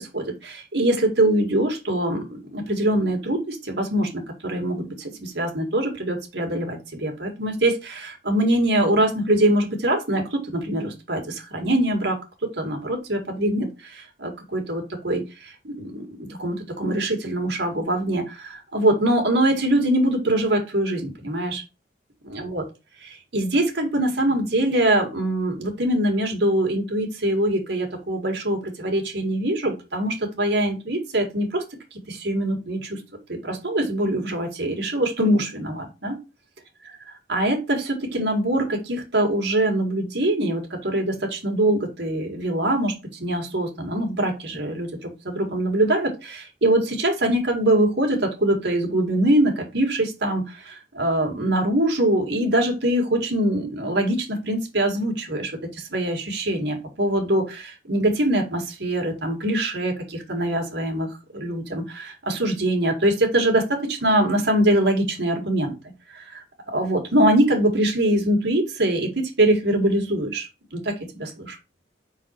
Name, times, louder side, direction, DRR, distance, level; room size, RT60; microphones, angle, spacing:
voice 1, 0.0-12.2 12.6-21.6 22.3-22.6 23.0-31.6 32.1-33.0 33.3-36.1 37.3-42.9 43.2-65.7 66.1-66.4 66.7-70.5 70.7-71.6, right 1 dB, 80° right, 2 dB, 1.8 m, -23 dB
5.2 x 4.0 x 4.4 m, 0.28 s
head